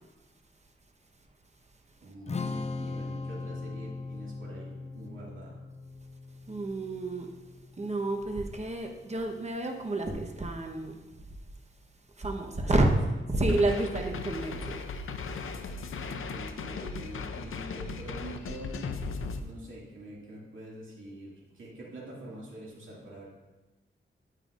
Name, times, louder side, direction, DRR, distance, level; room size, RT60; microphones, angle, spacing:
voice 1, 2.0-5.6 12.5-12.8 16.0-18.9 19.4-23.3, right 1 dB, 75° right, -5 dB, 2.3 m, -45 dB
Strum, 2.3-8.5, left 3 dB, 35° left, 0.5 m, -39 dB
voice 2, 6.5-7.3 7.8-11.1 12.2-15.9 16.6-17.0, right 2 dB, 35° right, 2 dB, 1.1 m, -30 dB
sound 1, 13.4-19.4, left 4 dB, 85° left, 0.6 m, -37 dB
9.1 x 8.9 x 2.6 m, 1.1 s
wide cardioid pair, 95°, 21 cm